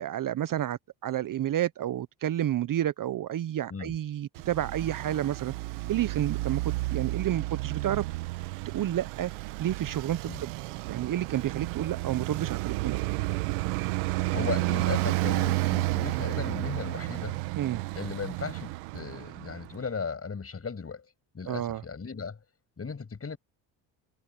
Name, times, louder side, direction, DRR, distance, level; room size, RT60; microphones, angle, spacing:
voice 1, 0.0-5.5 5.9-6.6 6.9-8.1 8.7-9.3 9.6-10.5 10.9-13.1 17.6-17.8 21.5-21.8, right 12 dB, 45° right, 0.8 m, -30 dB
Traffic noise roadway noise, 4.4-19.8, right 20 dB, 85° right, 1.8 m, -31 dB
voice 2, 14.3-17.3 17.9-21.1 21.3-22.4 22.8-23.4, left 5 dB, 30° left, 7.4 m, -36 dB
supercardioid pair, 80°, 47 cm